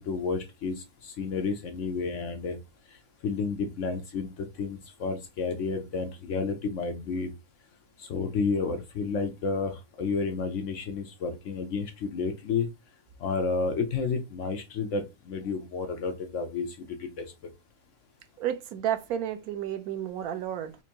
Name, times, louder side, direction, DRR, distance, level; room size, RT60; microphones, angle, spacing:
voice 1, 0.0-2.6 3.2-7.3 8.0-12.7 13.2-17.3, left 4 dB, 65° left, 0.9 m, -31 dB
voice 2, 18.4-20.8, right 10 dB, 90° right, 1.1 m, -31 dB
4.4 x 2.6 x 2.8 m
omnidirectional pair, 1.5 m